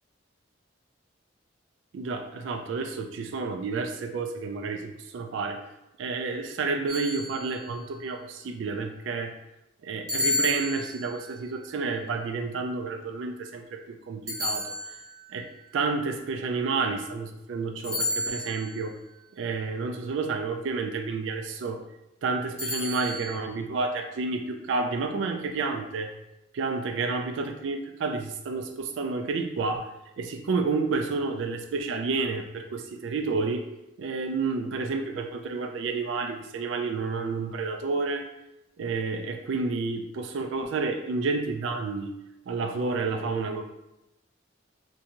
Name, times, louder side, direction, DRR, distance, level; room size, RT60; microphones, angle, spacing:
voice 1, 1.9-5.6 6.0-9.3 9.8-13.8 14.1-14.7 15.3-15.5 15.7-18.9 19.4-21.8 22.2-26.1 26.5-29.9 30.2-33.6 34.0-38.2 38.8-42.1 42.5-43.6, right 4 dB, 70° right, 5 dB, 0.3 m, -30 dB
sound 1, 6.9-7.8 10.1-11.3 14.3-15.3 17.8-18.8 22.6-23.4, left 1 dB, 20° right, 0.8 m, -31 dB
2.6 x 2.3 x 2.8 m, 0.91 s
head